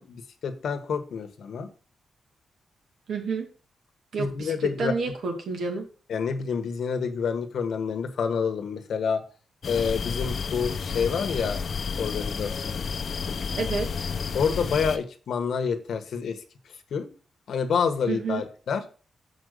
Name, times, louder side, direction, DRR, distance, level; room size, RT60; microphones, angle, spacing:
voice 1, 0.0-1.7 4.2-4.9 6.1-9.2 9.7-11.6 12.0-12.8 13.3-13.4 14.3-16.4 16.9-17.1 17.5-18.8, left 6 dB, 70° left, 7 dB, 1.3 m, -28 dB
voice 2, 3.1-3.5 4.1-5.8 13.6-14.1 18.1-18.4, right 4 dB, 75° right, 3 dB, 2.5 m, -29 dB
sound 1, 9.6-15.0, left 5 dB, 50° left, 0.8 m, -31 dB
7.1 x 5.3 x 6.5 m, 0.38 s
wide cardioid pair, 145°, 0 cm